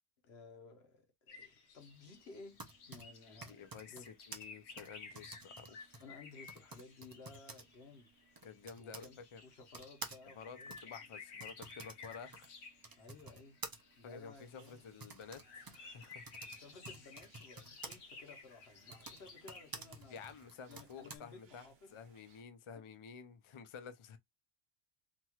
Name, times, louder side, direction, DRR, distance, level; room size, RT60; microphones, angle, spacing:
voice 1, 0.2-2.6 2.9-4.1 6.0-8.1 8.8-11.1 13.0-13.6 14.0-14.8 16.6-20.3 20.7-22.0, left 3 dB, 75° left, 1.2 m, -56 dB
sound 1, 1.3-20.4, left 4 dB, 90° left, 1.0 m, -55 dB
Typing, 2.3-9.1 9.7-18.0 18.8-21.2, right 3 dB, 40° right, 0.3 m, -52 dB
voice 2, 3.3-6.0 8.4-9.4 10.4-12.5 14.0-16.2 20.1-24.2, left 6 dB, 50° left, 0.3 m, -52 dB
sound 2, 14.3-22.4, right 5 dB, 70° right, 0.9 m, -69 dB
3.0 x 2.3 x 2.8 m
omnidirectional pair, 1.1 m